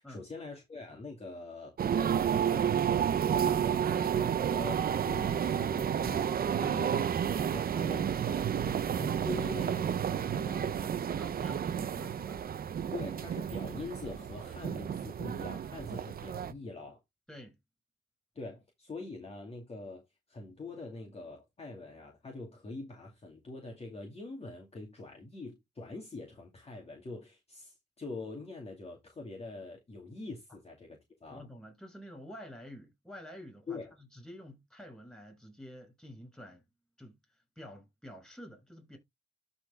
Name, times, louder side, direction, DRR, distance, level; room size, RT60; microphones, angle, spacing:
voice 1, 0.0-7.1 7.4-10.9 12.9-17.0 18.4-20.0 20.3-31.4 33.7-33.9, left 3 dB, 35° left, 2.4 m, -44 dB
sound 1, 1.8-16.5, right 8 dB, 55° right, 0.8 m, -31 dB
voice 2, 11.2-12.4 17.3-17.6 31.3-33.8 34.1-36.6 37.0-37.2 37.6-39.0, equal, 5° left, 6.1 m, -49 dB
12.5 x 4.4 x 3.5 m
cardioid pair, 95°, 18 cm